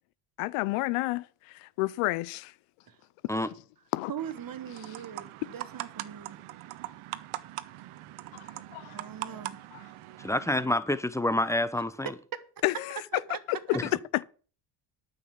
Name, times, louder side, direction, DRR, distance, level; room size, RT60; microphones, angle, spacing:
voice 1, 0.4-2.5 3.9-4.1 8.7-9.0 12.6-13.0 13.5-13.8, left 19 dB, 85° left, 0.6 m, -30 dB
voice 2, 4.1-6.4 8.9-9.6 13.1-13.8, right 8 dB, 45° right, 1.3 m, -40 dB
sound 1, 4.2-10.7, right 15 dB, 75° right, 0.9 m, -42 dB
voice 3, 10.2-12.1 13.7-13.8, left 1 dB, 5° left, 0.9 m, -27 dB
9.2 x 6.7 x 7.6 m
cardioid pair, 95°, 50 cm